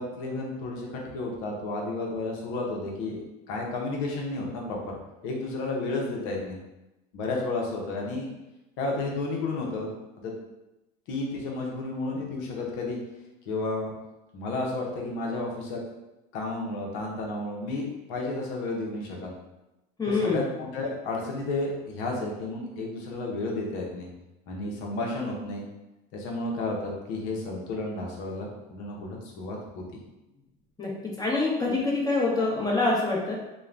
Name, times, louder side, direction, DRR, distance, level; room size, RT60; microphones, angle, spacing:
voice 1, 0.0-4.9 5.2-6.6 7.1-8.3 8.8-9.9 10.2-10.3 11.1-13.0 13.5-13.9 14.3-15.8 16.3-19.3 20.1-24.1 24.5-25.6 26.1-29.8, left 2 dB, 75° left, -1 dB, 0.7 m, -32 dB
voice 2, 20.0-20.4 30.8-30.9 31.2-33.4, left 3 dB, 20° left, -4 dB, 0.9 m, -25 dB
3.0 x 2.2 x 2.4 m, 0.98 s
supercardioid pair, 85°, 20 cm